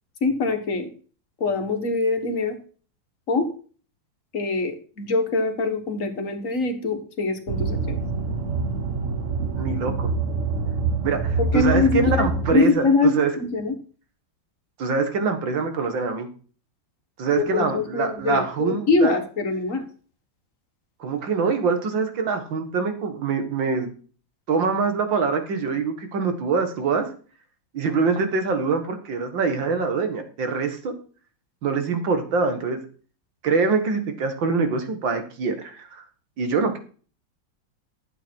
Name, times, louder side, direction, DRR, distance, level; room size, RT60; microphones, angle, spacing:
voice 1, 0.2-0.9 1.4-2.6 3.3-3.5 4.3-8.0 11.4-13.7 17.3-19.8, left 4 dB, 45° left, 6 dB, 1.7 m, -23 dB
sound 1, 7.5-12.6, right 4 dB, 45° right, 1.3 m, -26 dB
voice 2, 9.5-10.1 11.0-13.3 14.8-16.3 17.2-19.2 21.0-23.9 24.5-27.1 27.7-30.9 31.6-32.8 33.4-36.0 36.4-36.8, right 4 dB, 80° right, 7 dB, 2.4 m, -24 dB
12.0 x 8.2 x 4.5 m, 0.40 s
omnidirectional pair, 2.0 m